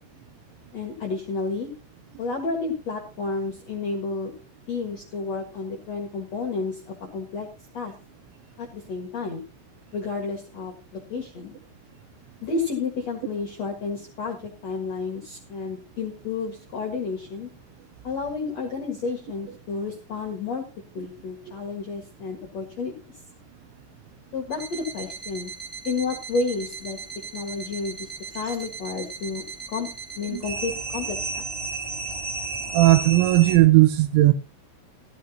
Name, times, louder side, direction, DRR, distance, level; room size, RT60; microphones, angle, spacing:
voice 1, 0.7-1.7 2.2-4.3 4.7-7.5 7.7-7.9 8.6-9.4 9.9-10.7 11.1-11.5 12.4-17.5 18.0-20.7 20.9-23.1 24.3-25.5 25.8-27.0 27.3-28.1 28.3-29.9 30.2-31.4, left 4 dB, 60° left, 1.7 m, -31 dB
sound 1, 24.5-33.6, right 3 dB, 15° right, 1.2 m, -34 dB
voice 2, 32.7-34.3, right 17 dB, 80° right, 2.9 m, -16 dB
16.0 x 13.0 x 2.9 m
omnidirectional pair, 5.8 m